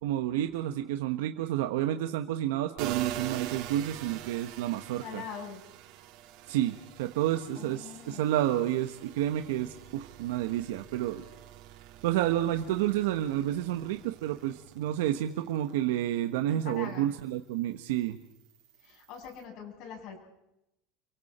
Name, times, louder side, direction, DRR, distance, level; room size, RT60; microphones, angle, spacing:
voice 1, 0.0-5.2 6.5-11.2 12.0-18.2, right 12 dB, 80° right, 7 dB, 1.3 m, -30 dB
sound 1, 2.8-16.1 16.6-19.4, right 12 dB, 60° right, 2.3 m, -45 dB
voice 2, 5.0-5.6 7.6-8.3 16.5-17.1 18.8-20.2, left 7 dB, 50° left, 0 dB, 8.0 m, -43 dB
30.0 x 24.0 x 4.4 m, 0.87 s
supercardioid pair, 140°, 0 cm